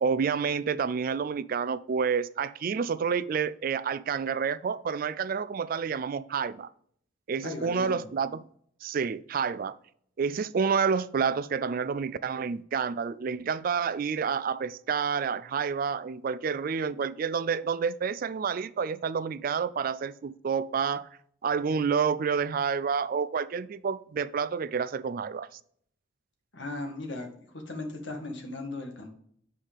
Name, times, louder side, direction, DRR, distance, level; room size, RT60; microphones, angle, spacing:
voice 1, 0.0-6.7 7.3-8.4 8.8-9.8 10.2-21.1 21.4-25.6, right 6 dB, 50° right, 0.4 m, -29 dB
voice 2, 7.4-8.0 26.5-27.3 27.7-29.1, left 2 dB, 75° left, 1.8 m, -37 dB
8.9 x 5.0 x 3.6 m
head